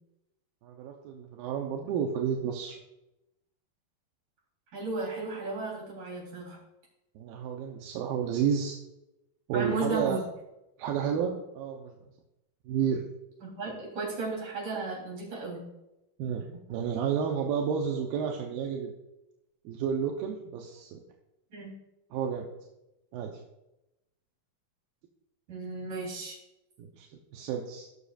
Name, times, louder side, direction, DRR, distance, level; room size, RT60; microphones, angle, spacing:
voice 1, 0.6-2.8 7.2-8.8 9.5-10.2 10.8-12.0 12.7-13.0 16.2-18.9 19.6-21.0 22.1-22.5 23.1-23.4 26.8-27.9, right 7 dB, 85° right, 1 dB, 2.6 m, -31 dB
voice 2, 4.7-6.6 9.5-10.2 13.4-15.6 21.5-21.7 25.5-26.4, right 3 dB, 60° right, -4 dB, 5.2 m, -34 dB
19.0 x 6.6 x 2.5 m, 0.91 s
omnidirectional pair, 4.2 m